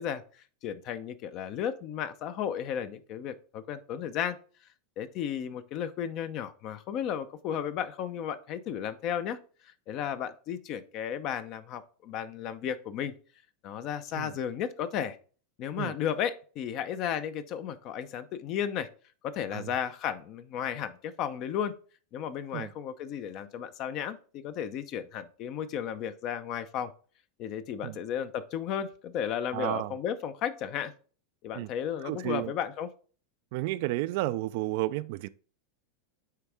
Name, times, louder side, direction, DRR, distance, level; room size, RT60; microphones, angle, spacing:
voice 1, 0.0-4.4 5.0-9.4 9.9-13.1 13.6-15.2 15.6-18.9 19.2-21.7 22.1-26.9 27.4-30.9 31.4-32.9, left 9 dB, 50° left, 0.7 m, -34 dB
voice 2, 29.5-29.9 31.5-31.7 32.0-32.5 33.5-35.3, right 18 dB, 60° right, 0.3 m, -32 dB
9.3 x 3.5 x 3.5 m
hypercardioid pair, 100°, 0 cm